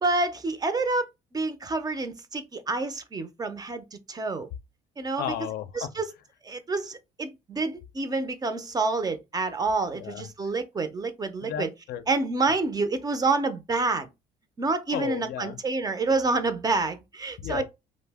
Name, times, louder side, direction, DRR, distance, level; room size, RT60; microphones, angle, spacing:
voice 1, 0.0-4.5 5.0-5.3 5.7-6.1 6.4-11.7 12.1-14.1 14.6-17.6, right 3 dB, 25° right, 0.4 m, -28 dB
voice 2, 5.2-5.9 9.9-10.3 11.4-12.0 14.9-15.6 17.4-17.6, left 10 dB, 70° left, 0.4 m, -33 dB
2.6 x 2.0 x 3.3 m
cardioid pair, 110°, 17 cm